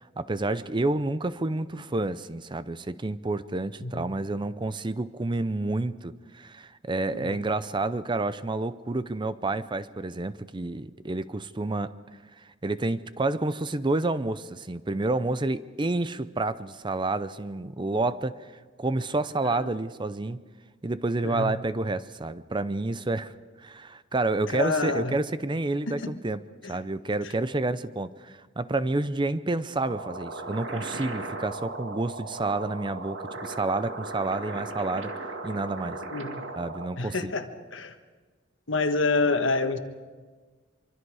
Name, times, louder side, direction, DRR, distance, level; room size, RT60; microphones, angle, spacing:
voice 1, 0.0-11.9 12.4-18.5 18.8-20.4 20.8-23.3 23.6-26.4 26.7-35.1 35.4-36.0 36.6-37.3, right 2 dB, 25° right, 0.6 m, -29 dB
voice 2, 3.8-4.1 7.1-7.4 19.4-19.6 21.2-21.6 24.5-25.2 25.9-26.1 26.6-26.8 36.1-36.4 37.0-37.9 38.7-39.8, left 3 dB, 85° left, 1.5 m, -28 dB
sound 1, 29.9-36.9, right 2 dB, 85° right, 2.0 m, -37 dB
24.5 x 24.5 x 4.8 m
head